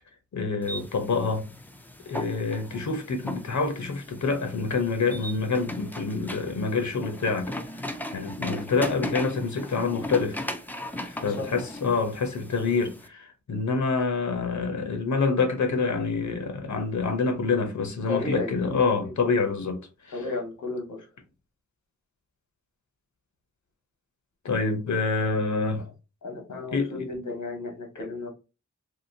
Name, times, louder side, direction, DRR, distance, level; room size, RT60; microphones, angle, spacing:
voice 1, 0.3-1.5 2.1-7.9 8.1-10.5 11.1-20.2 24.4-25.9 26.7-27.1, left 4 dB, 70° left, 0.8 m, -27 dB
sound 1, 0.6-13.1, left 1 dB, 5° left, 0.3 m, -38 dB
voice 2, 18.1-18.5 19.0-19.1 20.1-21.1 26.2-28.3, left 2 dB, 90° left, 1.3 m, -33 dB
3.1 x 2.8 x 2.7 m
wide cardioid pair, 110°, 30 cm